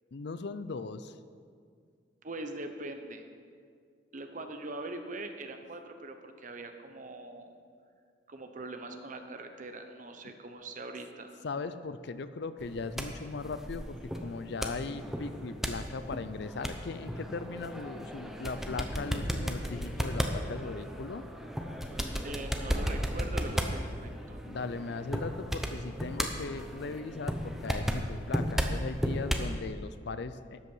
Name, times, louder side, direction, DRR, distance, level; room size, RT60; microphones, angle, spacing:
voice 1, 0.1-1.1 10.2-10.3 11.4-21.2 24.4-30.6, left 4 dB, 60° left, 12 dB, 0.5 m, -38 dB
voice 2, 2.2-3.2 4.1-7.5 8.3-11.4 22.2-24.4, right 2 dB, 40° right, 6 dB, 0.9 m, -42 dB
sound 1, 12.6-29.6, equal, ahead, 0.7 m, -35 dB
12.5 x 8.3 x 5.5 m, 2.2 s
head